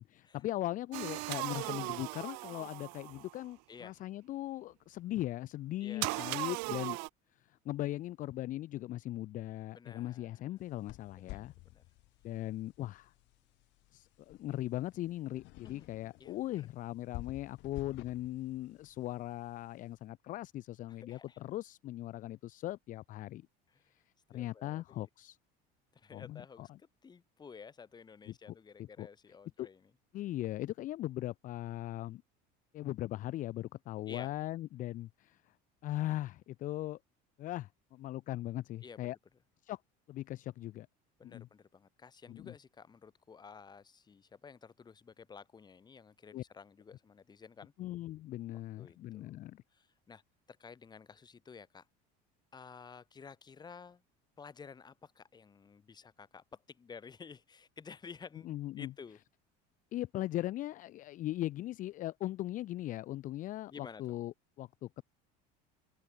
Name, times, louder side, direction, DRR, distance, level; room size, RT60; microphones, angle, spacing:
voice 1, 0.0-7.0 7.3-11.5 12.2-13.1 13.9-23.5 23.9-24.0 24.3-25.4 26.1-26.8 28.3-29.1 29.6-29.7 30.1-32.2 32.7-35.5 35.8-37.0 37.4-39.2 39.6-39.8 40.1-40.9 41.2-41.5 42.3-42.5 46.3-46.4 47.8-49.6 58.4-58.9 59.9-65.0, left 15 dB, 40° left, 0.5 m, -39 dB
sound 1, 0.9-3.4 6.0-7.1, right 40 dB or more, 80° right, 0.4 m, -38 dB
voice 2, 5.8-6.4 9.7-10.4 11.2-11.8 15.6-15.9 16.2-16.7 20.9-21.4 23.7-23.8 24.3-25.1 25.9-29.8 34.1-34.3 38.8-39.1 41.2-47.7 48.8-49.4 49.7-50.2 50.5-51.9 52.5-54.0 54.4-58.5 58.8-59.2 63.7-64.0, left 6 dB, 20° left, 2.0 m, -52 dB
sound 2, 10.6-19.9, left 21 dB, 65° left, 2.1 m, -52 dB
open air
cardioid pair, 140°, 20 cm